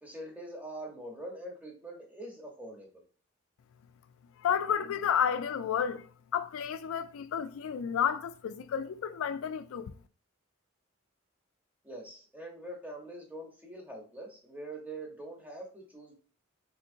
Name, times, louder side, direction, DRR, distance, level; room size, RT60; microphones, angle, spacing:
voice 1, 0.0-3.0 11.8-16.2, right 1 dB, 10° right, 0.8 m, -44 dB
voice 2, 4.4-6.0 6.3-9.9, left 8 dB, 85° left, 0.3 m, -31 dB
3.7 x 2.7 x 2.5 m
head